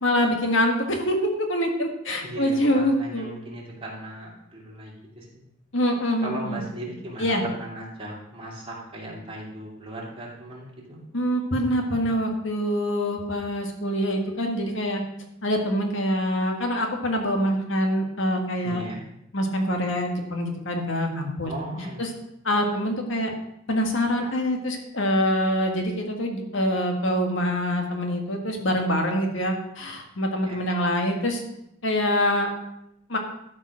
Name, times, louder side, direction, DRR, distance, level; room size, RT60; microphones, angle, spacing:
voice 1, 0.0-3.3 5.7-6.6 7.2-7.4 11.1-15.0 15.4-18.8 19.3-21.5 22.0-22.1 22.4-23.3 23.7-31.4 31.8-32.5 33.1-33.2, equal, 70° left, 3 dB, 1.7 m, -25 dB
voice 2, 2.2-5.4 6.2-11.0 18.6-19.0 21.4-22.0 30.4-30.6, right 1 dB, 30° right, -4 dB, 2.6 m, -37 dB
12.5 x 5.4 x 6.2 m, 0.82 s
head